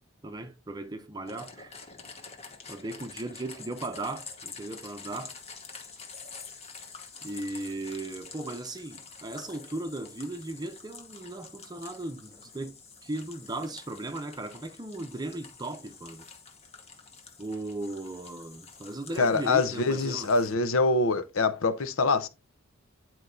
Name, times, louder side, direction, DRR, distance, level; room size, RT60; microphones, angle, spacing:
voice 1, 0.2-1.8 2.7-5.3 7.2-12.7 13.0-16.3 17.4-20.3, right 2 dB, 20° right, 0.6 m, -37 dB
sound 1, 1.3-20.5, left 5 dB, 30° left, 1.1 m, -47 dB
voice 2, 19.2-22.3, left 3 dB, 75° left, 0.7 m, -25 dB
9.8 x 4.5 x 2.7 m
head